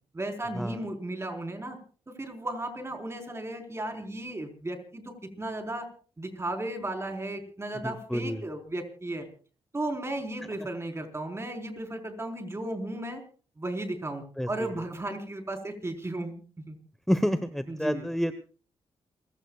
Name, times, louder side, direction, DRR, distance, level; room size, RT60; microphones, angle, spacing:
voice 1, 0.1-1.8 2.2-5.9 6.2-9.3 9.7-13.2 13.6-16.8 17.7-18.0, right 1 dB, 25° right, 4 dB, 4.2 m, -35 dB
voice 2, 7.8-8.5 10.6-10.7 14.4-14.8 17.1-18.4, equal, 5° left, 10 dB, 1.0 m, -29 dB
28.5 x 16.5 x 2.4 m, 0.40 s
cardioid pair, 70°, 10 cm